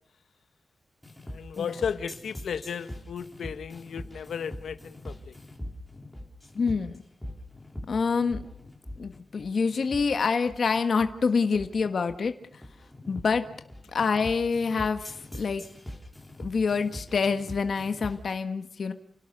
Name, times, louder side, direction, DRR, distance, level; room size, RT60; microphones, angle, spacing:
sound 1, 1.0-18.3, left 1 dB, 5° left, 3.5 m, -42 dB
voice 1, 1.3-5.3, left 7 dB, 90° left, 10 dB, 1.6 m, -34 dB
voice 2, 6.5-7.0 7.9-8.4 9.0-12.3 13.1-13.5 13.9-15.6 16.4-18.9, left 5 dB, 50° left, 8 dB, 1.5 m, -26 dB
30.0 x 17.5 x 6.8 m, 0.67 s
wide cardioid pair, 175°, 0 cm